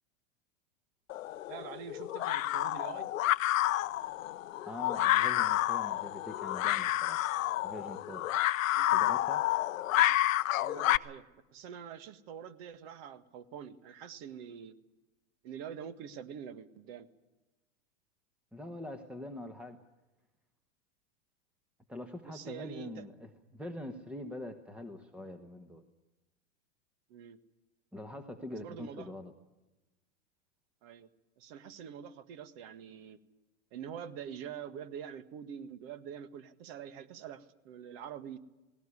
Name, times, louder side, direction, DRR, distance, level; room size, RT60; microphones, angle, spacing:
sound 1, 1.1-11.0, left 14 dB, 85° left, 0.8 m, -30 dB
voice 1, 1.5-3.1 8.8-8.9 9.9-10.2 10.6-11.3 11.5-14.8 15.4-17.1 22.2-23.0 27.1-27.4 28.5-29.1 30.8-31.1 31.4-33.2 33.7-38.4, right 8 dB, 50° right, 13 dB, 1.7 m, -45 dB
voice 2, 4.6-7.2 7.6-8.3 8.9-9.4 18.5-19.8 21.9-25.8 27.9-29.3, left 1 dB, 5° right, 8 dB, 1.1 m, -44 dB
18.5 x 17.5 x 9.9 m, 1.1 s
hypercardioid pair, 130°, 39 cm